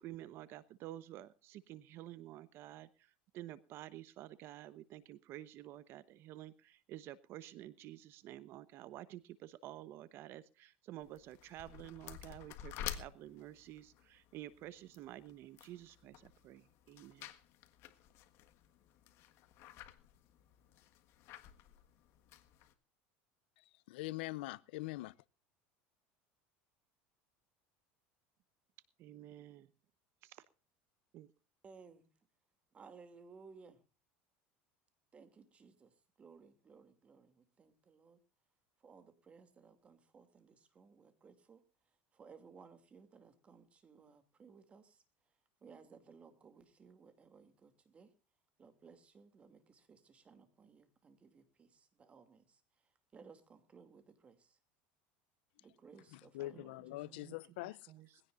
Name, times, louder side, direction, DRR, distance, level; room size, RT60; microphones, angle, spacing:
voice 1, 0.0-17.3 29.0-29.7 30.2-30.4 31.1-31.3 56.5-56.6 57.0-57.4 57.9-58.2, right 14 dB, 45° right, 1.0 m, -51 dB
sound 1, 11.0-22.7, left 11 dB, 50° left, 1.6 m, -51 dB
voice 2, 23.9-25.1 56.1-57.8, left 18 dB, 90° left, 0.7 m, -43 dB
voice 3, 31.6-32.1 32.7-33.8 35.1-38.2 38.8-41.6 42.1-45.0 45.6-48.1 48.6-52.6 53.1-54.6 55.6-57.1, right 5 dB, 20° right, 2.6 m, -60 dB
21.0 x 16.5 x 2.5 m
cardioid pair, 150°, 5 cm